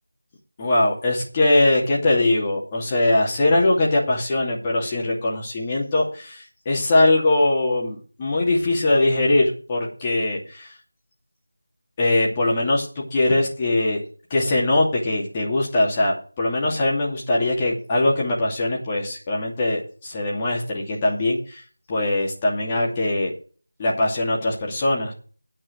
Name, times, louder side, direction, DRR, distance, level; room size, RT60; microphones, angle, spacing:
voice 1, 0.6-10.6 12.0-14.0 14.3-21.6 21.9-23.3 23.8-25.1, left 2 dB, 15° left, -3 dB, 2.6 m, -21 dB
10.0 x 8.7 x 5.1 m, 0.39 s
figure-of-eight pair, 165°, 0 cm